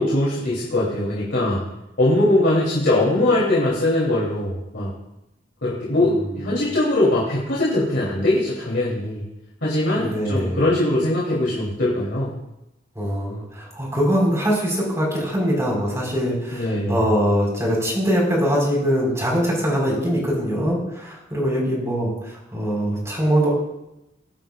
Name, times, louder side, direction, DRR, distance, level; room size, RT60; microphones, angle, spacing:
voice 1, 0.0-1.6 2.0-4.9 5.6-9.2 9.6-12.3 16.5-17.0, left 1 dB, 65° left, -7 dB, 3.1 m, -21 dB
voice 2, 5.9-6.3 9.9-10.6 12.9-23.5, equal, 15° right, -3 dB, 4.3 m, -22 dB
21.5 x 8.9 x 2.4 m, 0.91 s
head